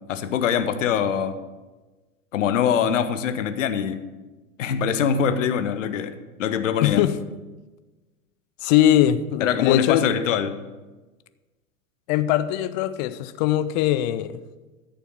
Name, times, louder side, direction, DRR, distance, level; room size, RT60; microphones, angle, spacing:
voice 1, 0.1-1.4 2.3-4.0 4.6-7.1 9.4-10.6, left 7 dB, 55° left, 1.1 m, -23 dB
voice 2, 6.8-7.2 8.6-10.0 12.1-14.4, left 12 dB, 30° left, 0.5 m, -21 dB
13.5 x 6.8 x 6.3 m
figure-of-eight pair, 90°, 44 cm